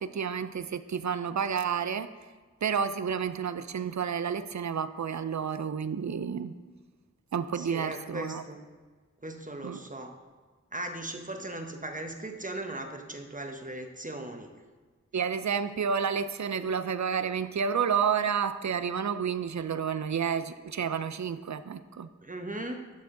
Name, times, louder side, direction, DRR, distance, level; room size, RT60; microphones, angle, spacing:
voice 1, 0.0-2.1 2.6-6.5 7.3-8.4 9.6-9.8 15.1-22.1, right 7 dB, 70° right, 13 dB, 0.5 m, -30 dB
voice 2, 7.5-8.6 9.2-10.1 10.7-14.5 22.2-22.9, right 1 dB, 25° right, 4 dB, 1.0 m, -38 dB
11.5 x 6.0 x 3.8 m, 1.4 s
wide cardioid pair, 50°, 29 cm